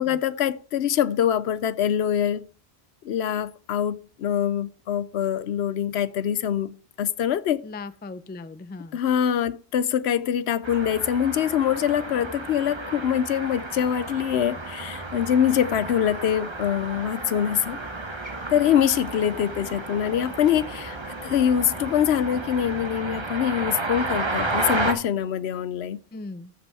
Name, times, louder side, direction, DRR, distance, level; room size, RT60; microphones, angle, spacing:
voice 1, 0.0-2.5 3.0-7.6 8.9-17.8 18.5-26.0, left 9 dB, 80° left, 0.9 m, -24 dB
voice 2, 7.6-9.0 26.1-26.5, left 3 dB, 15° left, 0.3 m, -38 dB
sound 1, 10.6-24.9, right 2 dB, 25° right, 1.2 m, -32 dB
14.0 x 5.3 x 4.7 m
omnidirectional pair, 1.1 m